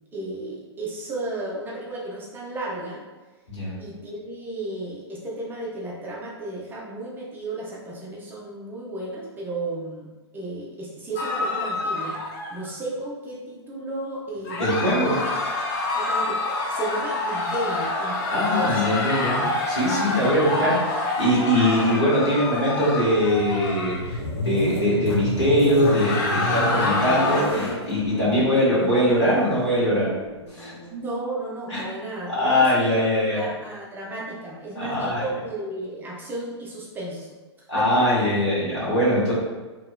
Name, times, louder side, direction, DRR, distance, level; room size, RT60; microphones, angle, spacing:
voice 1, 0.1-3.0 3.8-12.1 12.5-15.2 16.0-16.4 16.7-18.8 26.8-27.0 28.3-28.5 30.9-37.3 37.8-37.9, right 2 dB, 15° right, -5 dB, 0.5 m, -33 dB
Crowd in panic, 11.2-12.7 14.5-24.1 25.7-27.4, left 2 dB, 40° left, 0.5 m, -27 dB
voice 2, 14.6-15.2 18.3-30.1 30.5-30.7 31.7-31.8 32.2-33.5 34.7-35.2 37.7-39.3, equal, 80° left, -10 dB, 1.4 m, -22 dB
sound 1, 23.2-30.9, left 2 dB, 60° left, 1.0 m, -31 dB
2.9 x 2.8 x 2.2 m, 1.2 s
figure-of-eight pair, 110°, 14 cm